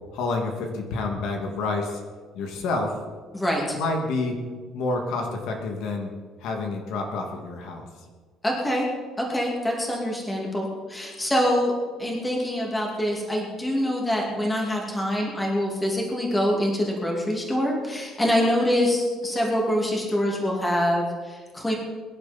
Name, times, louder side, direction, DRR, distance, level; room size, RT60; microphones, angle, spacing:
voice 1, 0.1-2.0 2.3-3.0 3.7-4.4 4.7-6.1 6.4-7.9, left 3 dB, 70° left, 2 dB, 2.5 m, -28 dB
voice 2, 3.3-3.8 8.4-8.9 9.2-11.7 12.0-21.7, equal, 10° left, -2 dB, 2.6 m, -25 dB
23.0 x 11.0 x 4.4 m, 1.5 s
cardioid pair, 170°, 0 cm